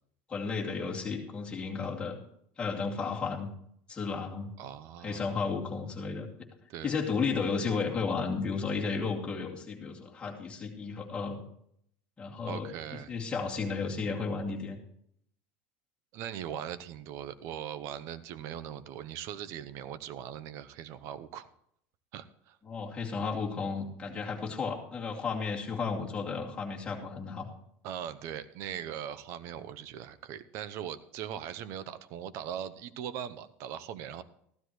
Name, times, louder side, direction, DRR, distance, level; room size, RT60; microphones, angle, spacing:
voice 1, 0.3-2.1 2.6-3.5 3.9-4.5 5.0-6.3 6.8-11.4 12.2-14.8 22.6-27.5, left 5 dB, 15° left, -3 dB, 2.4 m, -33 dB
voice 2, 4.6-5.4 6.7-6.9 12.4-13.1 16.1-21.5 22.1-22.6 27.8-34.2, right 10 dB, 55° right, 14 dB, 0.8 m, -40 dB
14.5 x 12.5 x 3.2 m, 0.70 s
cardioid pair, 150°, 6 cm